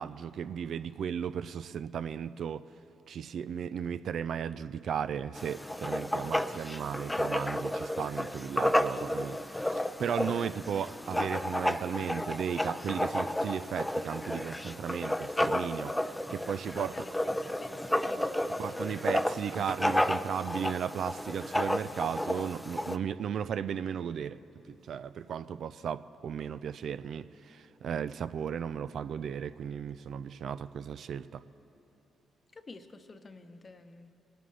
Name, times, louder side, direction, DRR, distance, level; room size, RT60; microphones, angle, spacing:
voice 1, 0.0-2.7 3.1-16.0 16.3-16.9 18.6-24.4 24.7-31.4, right 8 dB, 65° right, 13 dB, 0.3 m, -35 dB
Writing, 5.3-23.0, left 1 dB, 10° left, 0.5 m, -32 dB
voice 2, 8.6-9.3 16.7-19.1 32.5-34.1, left 3 dB, 40° left, 9 dB, 0.9 m, -49 dB
20.0 x 9.2 x 3.3 m, 2.8 s
hypercardioid pair, 50°, 0 cm